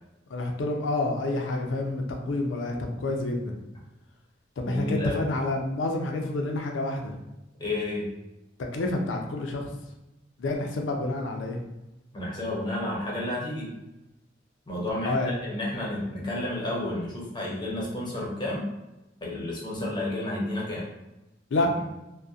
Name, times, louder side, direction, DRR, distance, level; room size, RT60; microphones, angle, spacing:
voice 1, 0.3-3.6 4.6-7.1 8.7-9.7 10.4-11.6 15.0-15.3 21.5-21.7, left 2 dB, 90° left, 2 dB, 0.4 m, -28 dB
voice 2, 4.6-5.2 7.6-8.1 12.1-13.7 14.7-18.6 19.2-20.8 21.6-21.7, left 1 dB, 25° left, -4 dB, 0.6 m, -31 dB
2.6 x 2.1 x 2.3 m, 0.97 s
head